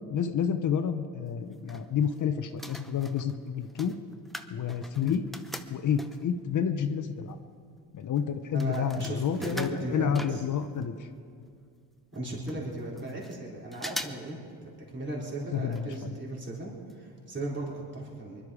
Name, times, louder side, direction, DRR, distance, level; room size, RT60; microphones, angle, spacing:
voice 1, 0.1-4.0 4.5-5.2 5.7-7.4 7.9-11.1 15.5-16.1, left 7 dB, 45° left, 9 dB, 0.9 m, -29 dB
sound 1, 1.3-2.2 2.5-6.4 7.0-7.1 7.3-10.9 11.2-11.3 11.5-11.6 12.1-12.2 12.5-13.4 13.7-14.3 14.6-14.7 15.7-16.0 16.3-16.4 16.9-17.0 17.3-17.4, equal, ahead, 0.7 m, -42 dB
voice 2, 8.5-10.4 12.1-18.4, right 1 dB, 25° right, -4 dB, 3.9 m, -36 dB
20.5 x 11.5 x 5.0 m, 2.3 s
supercardioid pair, 80°, 42 cm